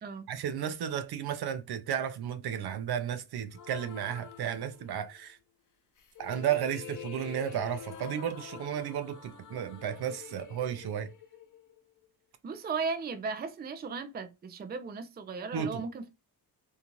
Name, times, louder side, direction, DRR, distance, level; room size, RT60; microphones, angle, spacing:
voice 1, 0.3-5.4 6.2-11.1 15.5-15.8, right 9 dB, 60° right, 0.6 m, -33 dB
sound 1, 3.5-5.2 6.0-12.1, left 9 dB, 45° left, 0.7 m, -47 dB
voice 2, 12.4-16.1, right 4 dB, 25° right, 0.5 m, -36 dB
2.7 x 2.4 x 2.9 m
cardioid pair, 100°, 42 cm